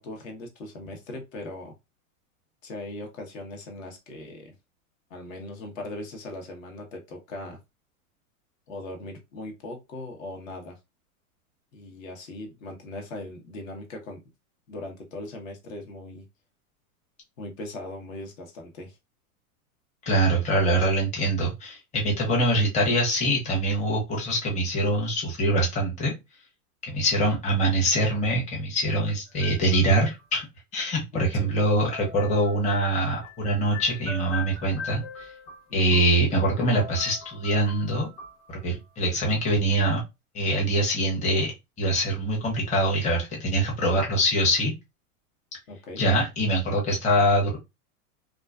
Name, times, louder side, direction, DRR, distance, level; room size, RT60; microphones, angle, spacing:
voice 1, 0.0-1.7 2.6-4.5 5.1-7.6 8.7-10.8 11.7-14.2 14.7-16.2 17.4-19.0 31.1-31.5 35.7-36.0 45.7-46.0, left 2 dB, 65° left, 3 dB, 1.0 m, -39 dB
voice 2, 20.1-26.1 26.9-30.5 30.7-35.3 35.7-38.1 38.5-40.0 40.3-41.5 41.8-44.7 46.0-47.6, right 1 dB, 15° left, -1 dB, 0.7 m, -24 dB
sound 1, 29.3-30.2 31.9-36.5 36.7-38.8, left 3 dB, 40° left, 1.1 m, -41 dB
2.4 x 2.3 x 2.3 m, 0.23 s
hypercardioid pair, 130°, 44 cm